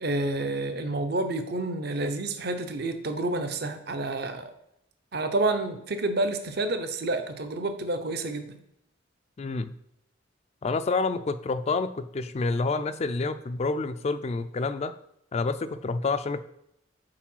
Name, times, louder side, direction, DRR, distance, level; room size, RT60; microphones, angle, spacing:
voice 1, 0.0-4.5 5.1-8.6, right 2 dB, 55° right, 8 dB, 0.7 m, -29 dB
voice 2, 9.4-9.7 10.6-14.9 15.3-16.4, left 3 dB, 35° left, 12 dB, 0.3 m, -28 dB
4.8 x 4.5 x 5.6 m, 0.78 s
head